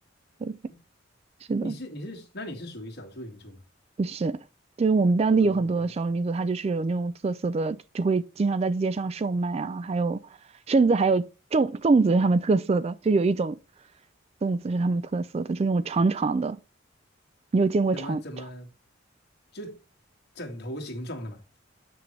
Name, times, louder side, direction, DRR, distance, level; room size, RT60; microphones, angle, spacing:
voice 1, 1.6-3.6 5.4-5.8 17.9-18.7 19.5-19.8 20.3-21.4, equal, 55° left, 1.9 m, -38 dB
voice 2, 4.0-4.4 4.8-10.2 10.7-11.3 11.5-13.6 14.4-16.6 17.5-18.2, right 3 dB, 30° right, 0.3 m, -24 dB
7.6 x 5.9 x 3.2 m
head